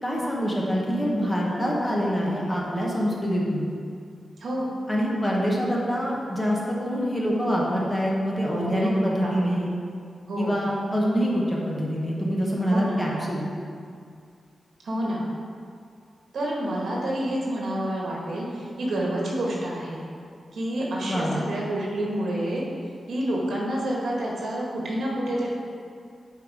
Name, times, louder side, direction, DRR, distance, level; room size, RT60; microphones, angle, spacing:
voice 1, 0.0-3.7 4.9-9.7 10.4-13.5 21.1-21.4, equal, 15° left, -4 dB, 1.1 m, -25 dB
voice 2, 4.4-4.7 8.5-9.6 10.3-10.6 12.7-13.0 14.8-15.2 16.3-20.0 20.5-22.6 23.1-25.5, right 1 dB, 70° right, -3 dB, 1.6 m, -28 dB
8.4 x 4.7 x 4.9 m, 2.3 s
wide cardioid pair, 180°, 0 cm